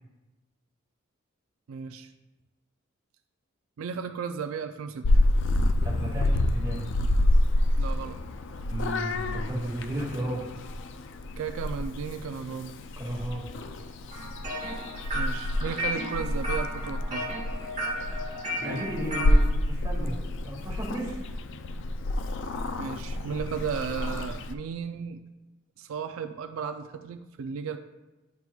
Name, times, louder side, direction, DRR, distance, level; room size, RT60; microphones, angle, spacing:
voice 1, 1.7-2.1 3.8-5.1 7.8-8.2 11.4-12.7 15.1-17.3 22.8-25.2 25.8-27.8, right 6 dB, 85° right, 7 dB, 0.4 m, -34 dB
Purr / Meow, 5.0-24.5, left 1 dB, 60° left, 0.4 m, -28 dB
voice 2, 5.8-6.9 8.7-10.5 13.0-13.5 18.6-21.3, right 1 dB, 20° right, -5 dB, 1.9 m, -34 dB
sound 1, 14.1-19.4, equal, 35° right, 1.6 m, -34 dB
9.4 x 5.9 x 2.3 m, 1.1 s
head